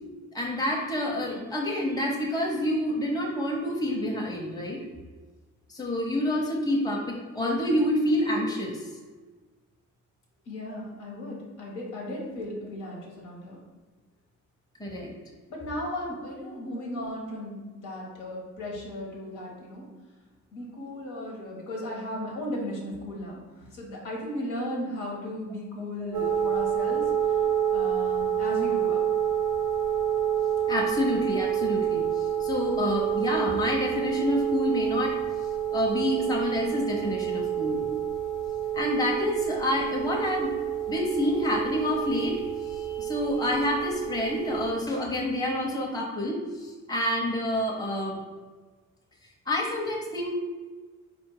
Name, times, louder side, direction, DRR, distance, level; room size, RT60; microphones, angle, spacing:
voice 1, 0.3-4.8 5.7-8.8 10.7-10.8 14.8-15.1 26.0-26.3 30.7-35.2 35.7-37.9 38.7-40.5 40.9-48.2 49.5-50.3, left 1 dB, 10° left, -1 dB, 0.8 m, -28 dB
voice 2, 10.5-13.6 15.5-19.9 20.5-27.4 27.7-29.0, left 1 dB, 85° left, -2 dB, 1.4 m, -36 dB
sound 1, 26.1-44.7, right 9 dB, 80° right, 0.6 m, -28 dB
4.1 x 2.6 x 4.7 m, 1.3 s
cardioid pair, 90°, 30 cm